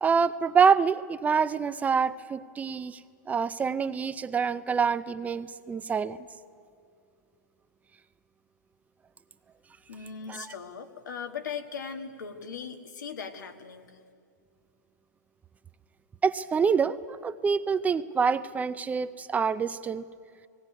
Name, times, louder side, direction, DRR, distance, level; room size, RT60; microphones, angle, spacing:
voice 1, 0.0-3.0 3.3-6.2 10.3-10.5 16.2-20.1, right 6 dB, 15° right, 0.5 m, -26 dB
voice 2, 9.9-14.0, left 6 dB, 80° left, 1.7 m, -39 dB
17.5 x 17.0 x 9.5 m
hypercardioid pair, 125°, 10 cm